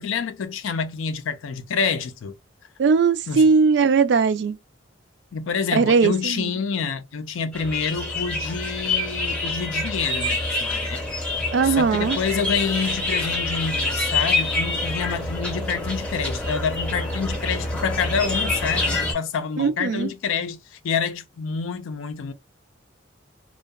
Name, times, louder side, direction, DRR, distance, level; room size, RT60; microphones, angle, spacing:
voice 1, 0.0-2.3 3.3-3.5 5.3-11.0 11.6-22.3, left 6 dB, 85° left, 0.4 m, -27 dB
voice 2, 2.8-4.6 5.7-6.5 11.5-12.2 19.6-20.1, right 5 dB, 60° right, 0.3 m, -19 dB
sound 1, 7.5-19.1, left 2 dB, 5° left, 0.5 m, -26 dB
2.6 x 2.2 x 2.3 m
head